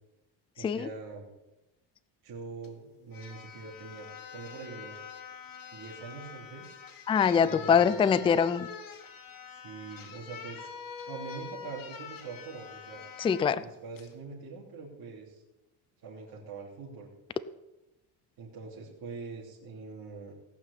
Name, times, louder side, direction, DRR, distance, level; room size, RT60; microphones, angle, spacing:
voice 1, 0.6-1.3 2.2-5.0 5.7-6.8 7.5-8.0 9.5-10.7 11.1-13.0 13.6-15.4 16.0-17.1 18.4-20.3, right 4 dB, 55° right, -5 dB, 3.2 m, -43 dB
sound 1, 2.6-2.7 3.1-13.5 14.0-14.1, left 6 dB, 45° left, 2.0 m, -45 dB
voice 2, 7.1-8.7 13.2-13.6, left 7 dB, 15° left, 14 dB, 0.3 m, -24 dB
17.5 x 5.9 x 8.3 m, 0.97 s
cardioid pair, 130°, 45 cm